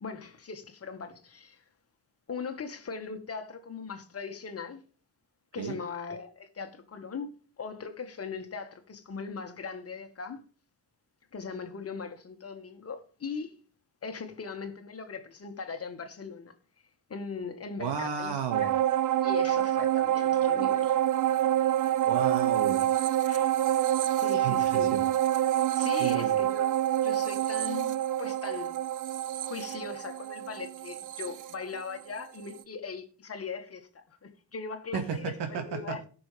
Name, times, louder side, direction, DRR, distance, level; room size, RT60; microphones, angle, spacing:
voice 1, 0.0-1.6 2.3-4.8 5.5-10.4 11.3-13.6 14.0-16.5 17.1-18.7 19.2-21.0 23.2-23.5 24.0-24.9 25.7-26.7 27.0-28.7 29.4-36.0, left 5 dB, 35° left, 1.6 m, -39 dB
voice 2, 17.8-18.7 22.1-22.9 24.3-25.0 26.0-26.4 34.9-36.0, right 7 dB, 75° right, 2.0 m, -33 dB
sound 1, 18.5-32.2 32.6-32.7, right 12 dB, 50° right, 0.6 m, -27 dB
18.5 x 6.2 x 3.4 m
cardioid pair, 140°, 42 cm